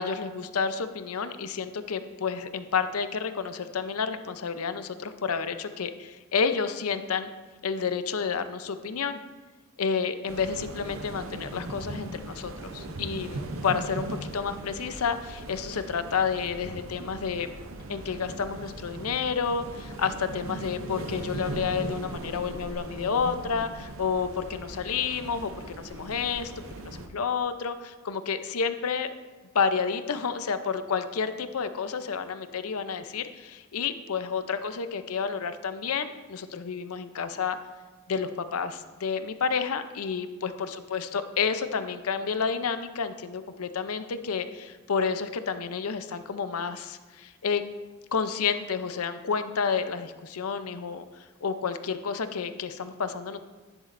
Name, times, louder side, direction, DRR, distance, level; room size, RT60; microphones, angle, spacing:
voice 1, 0.0-7.3 7.6-9.2 9.8-17.5 17.9-26.5 26.8-29.1 29.5-37.6 38.1-47.6 48.1-51.0 51.4-53.4, left 6 dB, 90° left, 10 dB, 0.6 m, -30 dB
sound 1, 10.3-27.1, right 2 dB, 65° right, 0.7 m, -39 dB
11.0 x 11.0 x 2.6 m, 1.3 s
head